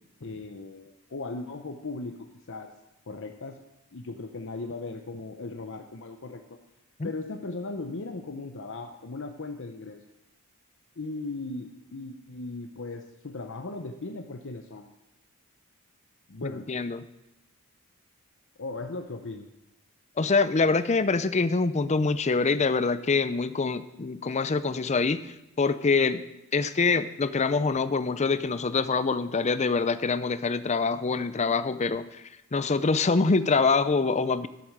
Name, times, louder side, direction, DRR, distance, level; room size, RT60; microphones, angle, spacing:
voice 1, 0.2-2.1 2.5-2.7 3.1-3.6 3.9-6.4 7.0-10.0 11.0-14.9 16.3-16.7 18.6-19.5, left 3 dB, 60° left, 4 dB, 0.8 m, -37 dB
voice 2, 16.4-17.1 20.2-26.2 26.5-32.2 32.5-34.5, left 4 dB, 30° left, 13 dB, 0.5 m, -25 dB
12.0 x 7.8 x 6.6 m, 0.90 s
head